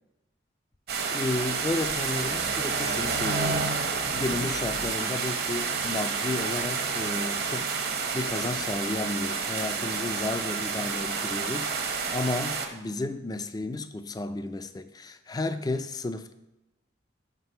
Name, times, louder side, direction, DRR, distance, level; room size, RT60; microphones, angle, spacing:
Rain in Kanchanaburi Thailand, 0.9-12.7, right 5 dB, 55° right, 0.9 m, -29 dB
voice 1, 1.1-3.8 4.1-16.3, left 2 dB, 20° left, 0.4 m, -33 dB
6.0 x 5.6 x 5.5 m
head